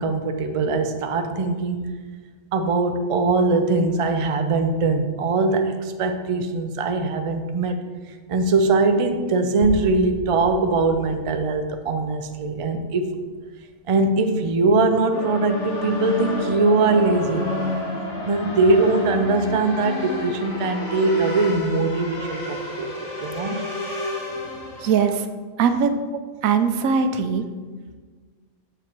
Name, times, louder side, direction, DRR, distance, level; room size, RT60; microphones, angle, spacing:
voice 1, 0.0-1.9 2.5-7.8 8.3-13.2 13.9-17.5 18.2-23.6, right 3 dB, 60° right, 6 dB, 0.3 m, -21 dB
sound 1, 9.6-13.6, left 1 dB, 85° left, 1.5 m, -38 dB
sound 2, 15.1-25.2, left 2 dB, 60° left, 1.7 m, -30 dB
voice 2, 24.7-25.3 25.6-25.9 26.4-27.5, right 6 dB, 90° right, 9 dB, 1.1 m, -20 dB
7.1 x 5.1 x 4.5 m, 1.5 s
omnidirectional pair, 1.4 m